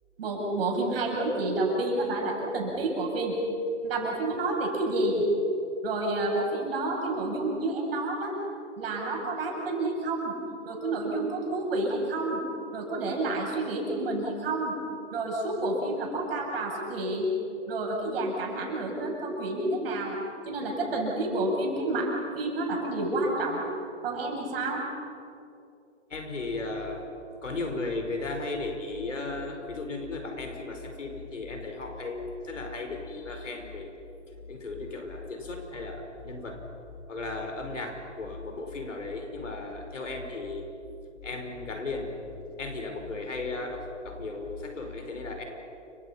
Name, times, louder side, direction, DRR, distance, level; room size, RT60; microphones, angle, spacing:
voice 1, 0.2-3.4 3.8-5.3 5.8-8.3 8.8-10.3 10.6-12.4 12.7-14.8 15.1-17.3 17.7-20.2 20.4-23.6 24.0-24.8, right 2 dB, 50° right, 0 dB, 7.8 m, -29 dB
voice 2, 26.1-27.1 27.4-33.9 34.5-36.6 37.1-40.7 41.2-45.4, left 3 dB, 85° left, 4 dB, 5.3 m, -35 dB
29.5 x 25.5 x 5.8 m, 2.8 s
hypercardioid pair, 140°, 36 cm